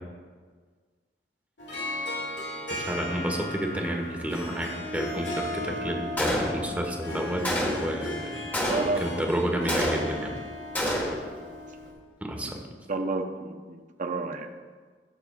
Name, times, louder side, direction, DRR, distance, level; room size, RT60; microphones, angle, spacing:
Harp, 1.6-11.9, left 1 dB, 85° left, 1.8 m, -36 dB
voice 1, 2.7-8.4 9.0-10.3 12.2-12.6, right 1 dB, 10° right, 1 dB, 1.1 m, -30 dB
Gunshot gunfire, 6.2-6.9 7.4-8.0 8.5-9.1 9.7-10.3 10.7-11.3, equal, 10° left, 1.3 m, -28 dB
voice 2, 8.6-9.3 12.4-12.5 12.9-14.5, right 2 dB, 45° right, 6 dB, 0.7 m, -31 dB
19.5 x 6.7 x 2.3 m, 1.5 s
head